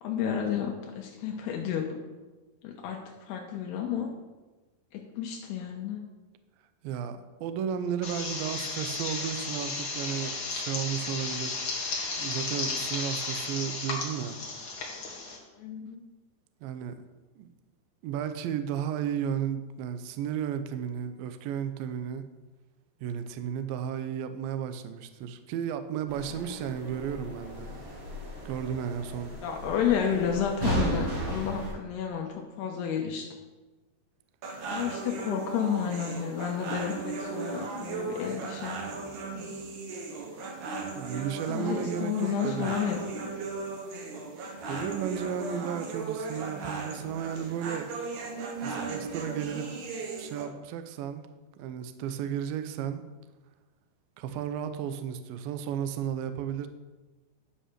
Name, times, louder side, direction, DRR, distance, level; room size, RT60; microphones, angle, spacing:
voice 1, 0.0-2.0 2.6-3.0 3.3-4.1 4.9-6.0 15.6-16.0 29.4-33.3 34.7-38.8 39.3-39.5 41.5-43.3, left 8 dB, 80° left, 1 dB, 2.9 m, -31 dB
voice 2, 6.8-14.4 16.6-17.0 17.4-17.5 18.0-22.3 23.0-27.7 28.5-29.4 41.0-42.8 44.7-47.9 48.6-49.7 50.2-51.2 51.6-53.0 54.2-56.7, right 8 dB, 80° right, 9 dB, 2.2 m, -34 dB
sound 1, 8.0-15.4, left 3 dB, 45° left, 1.6 m, -34 dB
sound 2, 26.1-31.7, right 1 dB, 40° right, 2.8 m, -35 dB
sound 3, 34.4-50.4, right 4 dB, 60° right, 2.4 m, -37 dB
11.5 x 5.6 x 6.6 m, 1.2 s
omnidirectional pair, 4.9 m